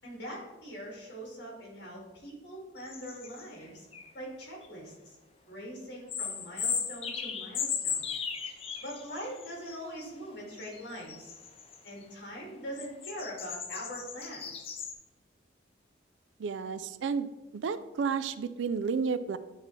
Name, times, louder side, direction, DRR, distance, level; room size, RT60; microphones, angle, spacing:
voice 1, 0.0-3.9 4.1-5.2 5.5-8.1 8.8-11.3 11.8-14.8, equal, 60° left, -3 dB, 2.2 m, -42 dB
sound 1, 2.8-3.4 3.9-4.1 4.4-4.7 6.1-10.1 10.6-12.0 12.8-14.9, left 6 dB, 30° left, 0.5 m, -37 dB
voice 2, 16.4-17.3 17.5-19.4, right 5 dB, 80° right, 13 dB, 0.4 m, -31 dB
9.1 x 3.6 x 3.2 m, 1.1 s
head